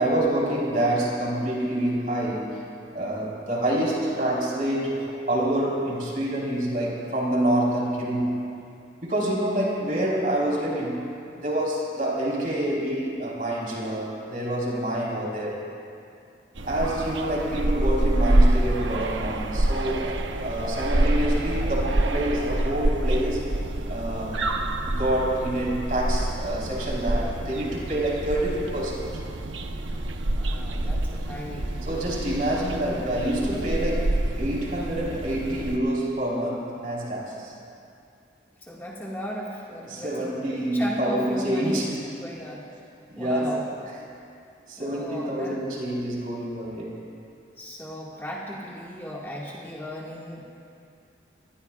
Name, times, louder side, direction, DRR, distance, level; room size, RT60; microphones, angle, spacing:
voice 1, 0.0-2.6 2.9-8.4 9.0-11.1 11.4-15.6 16.7-20.1 20.4-23.5 23.9-24.5 24.8-29.1 31.9-37.5 39.9-42.0 43.1-43.6 44.7-47.0, right 1 dB, 45° right, -4 dB, 4.0 m, -27 dB
sound 1, 16.6-35.8, right 1 dB, 90° right, 0.9 m, -26 dB
voice 2, 30.3-32.8 38.6-41.9 42.2-42.7 43.2-43.6 44.8-45.6 47.6-50.5, equal, 10° left, -5 dB, 1.8 m, -36 dB
25.5 x 20.0 x 2.4 m, 2.5 s
head